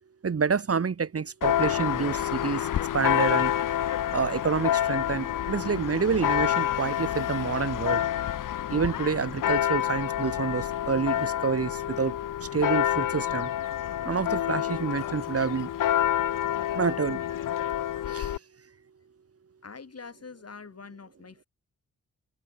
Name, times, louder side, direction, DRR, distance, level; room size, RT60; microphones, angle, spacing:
voice 1, 0.2-2.7 2.9-3.5 4.1-8.0 8.7-13.5 14.0-15.7 16.7-17.2 18.1-18.4, right 5 dB, 45° right, 1.4 m, -28 dB
Church bell, 1.4-18.4, left 11 dB, 85° left, 0.8 m, -28 dB
voice 2, 19.6-21.5, left 5 dB, 50° left, 5.7 m, -44 dB
open air
cardioid pair, 60°, 31 cm